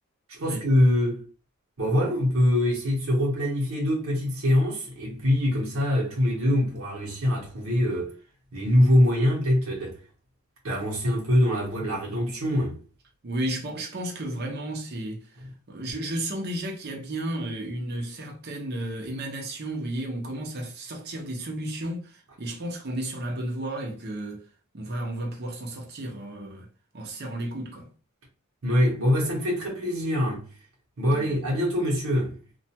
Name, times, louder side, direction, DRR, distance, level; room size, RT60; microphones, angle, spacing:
voice 1, 0.3-1.2 1.8-8.1 8.5-10.0 10.6-12.8 28.6-30.5 31.0-32.4, left 1 dB, 75° right, 0.9 m, -24 dB
voice 2, 13.2-24.4 24.7-26.7 26.9-27.9 31.0-31.4, right 1 dB, 50° right, 0.6 m, -33 dB
2.4 x 2.2 x 2.8 m
head